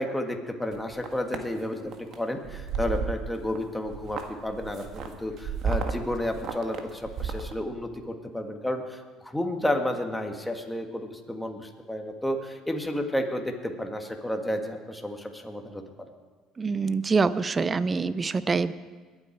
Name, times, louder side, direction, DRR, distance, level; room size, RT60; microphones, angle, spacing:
voice 1, 0.0-15.8, left 1 dB, 5° left, 3 dB, 1.9 m, -31 dB
sound 1, 0.7-1.4 1.9-2.2 2.4-3.6 3.8-7.5, right 5 dB, 60° right, 1.5 m, -33 dB
voice 2, 16.6-18.7, right 4 dB, 30° right, 15 dB, 0.7 m, -25 dB
21.5 x 8.9 x 4.7 m, 1.4 s
supercardioid pair, 75°, 0 cm